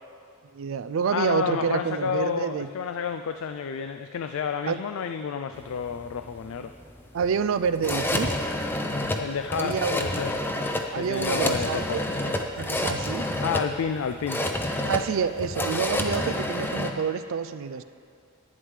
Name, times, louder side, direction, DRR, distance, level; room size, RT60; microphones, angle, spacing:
voice 1, 0.5-2.7 4.7-4.8 7.1-8.3 9.5-10.2 10.9-12.0 12.6-13.3 14.9-17.8, right 6 dB, 70° right, 12 dB, 0.4 m, -28 dB
voice 2, 1.1-6.7 9.2-10.4 10.9-12.0 13.4-14.4, left 7 dB, 85° left, 8 dB, 0.3 m, -30 dB
sound 1, 5.5-16.9, left 1 dB, 10° left, 0.5 m, -29 dB
11.0 x 9.8 x 3.2 m, 2.5 s
head